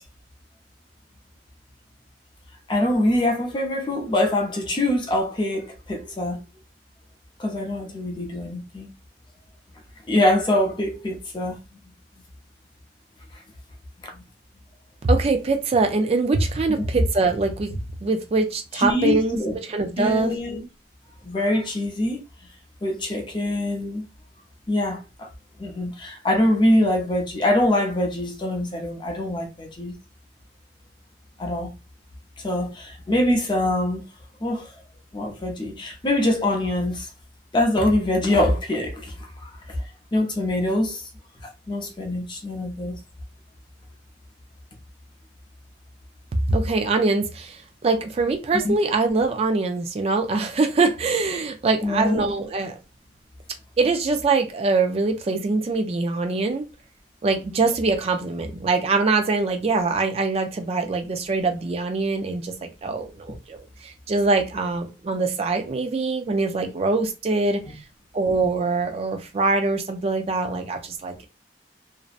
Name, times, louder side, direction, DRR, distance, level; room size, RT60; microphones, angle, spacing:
voice 1, 2.7-6.4 7.4-8.9 10.1-11.6 14.0-14.2 17.0-17.1 18.7-19.5 20.0-20.6 21.2-22.2 22.8-24.0 24.7-25.3 25.6-29.9 31.4-31.7 32.4-34.0 34.4-34.7 35.1-37.1 37.5-39.1 39.4-39.5 40.1-41.1 41.7-43.0 48.5-48.7 51.8-52.2 67.6-67.7, left 1 dB, 25° left, 0.6 m, -24 dB
voice 2, 15.0-20.3 46.5-52.8 53.8-56.6 57.2-67.6 68.1-71.3, right 3 dB, 35° right, 0.4 m, -23 dB
2.5 x 2.1 x 2.4 m
head